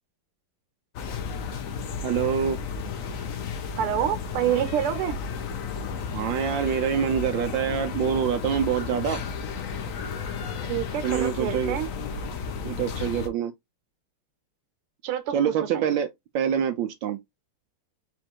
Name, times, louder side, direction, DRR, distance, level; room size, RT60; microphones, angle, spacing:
sound 1, 0.9-13.3, left 5 dB, 80° left, 0.7 m, -33 dB
voice 1, 2.0-2.6 6.1-9.2 11.0-11.8 12.6-13.5 15.3-16.1 16.3-17.2, right 8 dB, 75° right, 1.2 m, -25 dB
voice 2, 3.8-5.2 10.6-11.9 15.0-16.0, right 11 dB, 90° right, 1.6 m, -27 dB
4.3 x 2.4 x 4.4 m
omnidirectional pair, 2.3 m